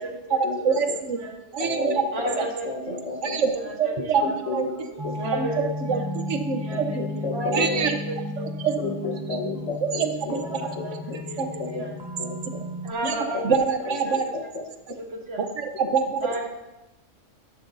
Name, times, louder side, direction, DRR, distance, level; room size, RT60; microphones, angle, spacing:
voice 1, 0.0-0.4 1.2-1.6 2.1-2.7 3.5-4.6 4.9-6.0 6.6-7.0 7.3-8.7 10.4-10.9 11.3-12.0 12.8-13.4 13.7-13.8 14.0-14.2 15.3-15.4 16.2-16.5, right 1 dB, 55° right, 1 dB, 1.7 m, -33 dB
voice 2, 0.6-1.2 1.5-2.0 3.2-3.5 3.8-4.6 5.3-5.5 5.9-6.8 7.5-7.9 8.6-8.7 10.0-10.4 11.4-11.5 13.0-13.1 13.4-14.2 15.4-16.2, right 6 dB, 75° right, 7 dB, 1.2 m, -24 dB
voice 3, 1.6-1.9 2.2-3.5 3.9-5.1 6.7-7.8 8.8-10.8 11.6-12.6 13.3-13.4 13.9-14.6, left 3 dB, 65° left, 2 dB, 1.5 m, -33 dB
sound 1, 5.0-12.9, left 2 dB, 25° right, 0.6 m, -35 dB
sound 2, 5.9-10.4, right 1 dB, ahead, 0.9 m, -38 dB
11.0 x 11.0 x 2.7 m, 1.0 s
omnidirectional pair, 1.3 m